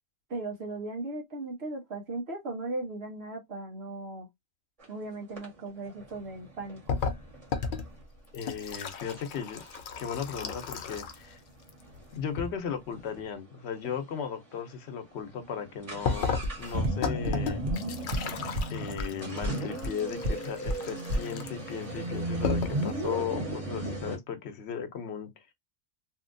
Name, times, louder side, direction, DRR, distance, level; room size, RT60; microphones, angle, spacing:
voice 1, 0.3-4.3 4.9-6.8, right 2 dB, 80° right, 1.2 m, -37 dB
sound 1, 4.8-4.9 5.4-8.0 8.6-8.7 9.1-9.2 9.6-13.3 13.6-13.7 13.8-14.0 14.6-14.7 15.0-24.2, right 1 dB, 35° right, 1.4 m, -36 dB
sound 2, 6.9-11.3 11.6-12.5 16.0-21.8 22.2-22.3 22.4-22.9, left 5 dB, 60° left, 0.7 m, -35 dB
voice 2, 8.3-9.6 10.0-11.4 12.1-17.6 18.7-25.5, left 7 dB, 90° left, 1.0 m, -36 dB
sound 3, 16.4-16.5 16.8-16.9 17.2-17.3 17.7-17.8 18.1-18.2 18.5-18.6 19.0-19.1 19.4-19.5 19.8-19.9 20.2-20.3 20.7-20.8 21.1-21.2, equal, 55° right, 0.9 m, -29 dB
2.8 x 2.7 x 2.5 m
omnidirectional pair, 1.1 m